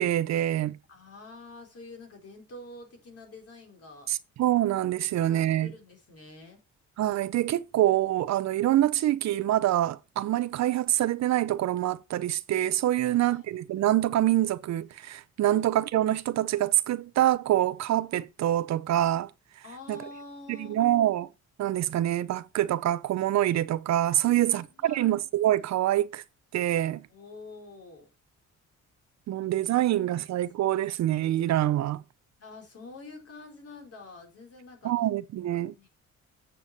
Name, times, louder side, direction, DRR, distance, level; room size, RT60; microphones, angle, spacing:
voice 1, 0.0-0.8 4.1-5.7 7.0-19.3 19.9-20.0 20.5-21.3 21.6-26.2 26.5-27.0 29.3-32.0 34.8-35.7, right 13 dB, 65° right, 0.6 m, -25 dB
voice 2, 0.9-4.1 5.3-6.6 13.0-13.4 15.5-15.7 19.6-21.2 24.2-25.1 27.1-28.1 29.8-29.9 30.2-30.3 30.7-30.9 32.4-35.1 35.6-35.9, left 3 dB, 50° left, 3.9 m, -47 dB
8.2 x 6.8 x 4.1 m
cardioid pair, 90°, 30 cm